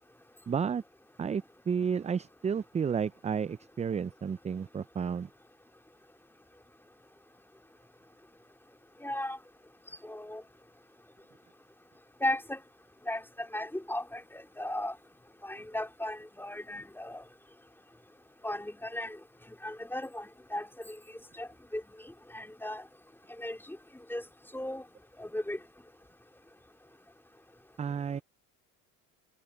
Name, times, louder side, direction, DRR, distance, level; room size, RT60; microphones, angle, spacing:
voice 1, 0.5-0.8 1.2-5.3 27.8-28.2, right 6 dB, 15° right, 0.4 m, -32 dB
voice 2, 9.0-9.4 10.0-10.4 12.2-12.6 13.1-14.9 15.4-17.2 18.4-19.2 19.6-21.0 21.4-21.8 22.3-22.8 23.4-23.8 24.1-24.2 24.5-24.8 25.2-25.6, left 1 dB, 5° left, 4.0 m, -36 dB
hypercardioid pair, 80°, 41 cm